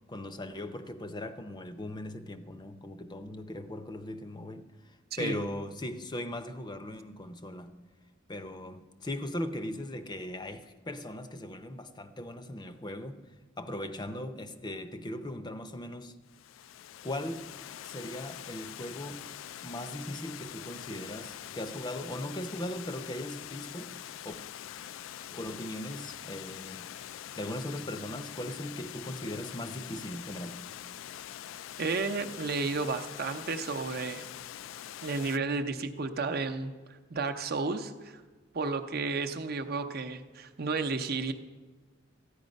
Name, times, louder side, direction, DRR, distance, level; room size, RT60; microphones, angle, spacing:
voice 1, 0.1-4.7 5.2-7.8 8.3-13.2 13.6-16.1 17.0-17.5 17.8-19.2 19.6-24.0 24.2-24.4 25.3-26.9 27.4-30.6, left 1 dB, 20° left, 0.6 m, -39 dB
Water, 16.3-35.4, left 11 dB, 70° left, 0.3 m, -44 dB
voice 2, 31.8-34.3 35.0-38.2 38.5-41.3, right 4 dB, 50° right, 0.7 m, -32 dB
13.5 x 9.9 x 5.3 m
head